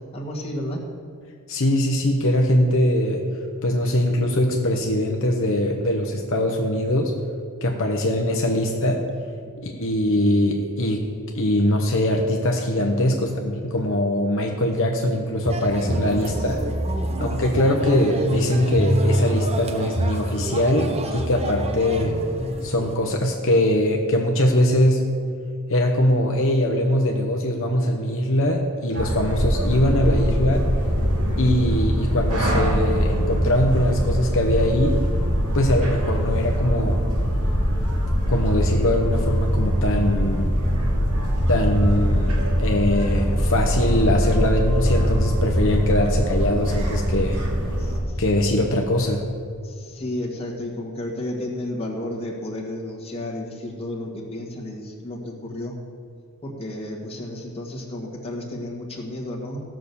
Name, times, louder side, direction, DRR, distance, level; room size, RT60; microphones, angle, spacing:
voice 1, 0.1-0.8 9.4-9.5 16.0-16.9 47.8-48.0 49.6-55.7 56.4-59.6, left 1 dB, 25° left, -1 dB, 1.8 m, -32 dB
voice 2, 1.5-3.3 3.6-7.2 7.6-9.0 9.6-11.0 11.3-16.6 17.2-22.2 22.6-25.0 25.7-30.6 31.4-35.0 35.5-37.0 38.3-40.5 41.5-47.4 48.2-49.2, left 1 dB, 60° left, 1 dB, 1.0 m, -22 dB
sound 1, 15.4-23.0, right 1 dB, 30° right, 0.9 m, -26 dB
sound 2, 28.9-48.0, equal, 80° right, 2.6 m, -22 dB
15.5 x 6.2 x 7.0 m, 2.3 s
head